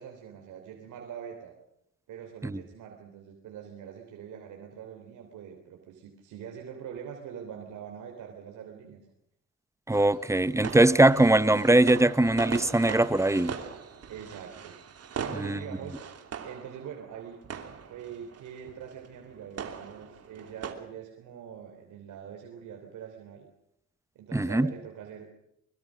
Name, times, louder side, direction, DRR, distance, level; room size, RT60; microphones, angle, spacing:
voice 1, 0.0-1.5 2.1-9.0 14.1-14.7 15.2-16.0 16.4-17.4 17.9-23.5 24.2-25.3, right 8 dB, 80° right, 3.5 m, -43 dB
voice 2, 9.9-13.6 15.3-15.6 24.3-24.7, right 1 dB, 10° right, 0.9 m, -21 dB
sound 1, 9.9-20.7, right 7 dB, 55° right, 3.0 m, -41 dB
24.0 x 22.5 x 6.4 m
cardioid pair, 90°, 30 cm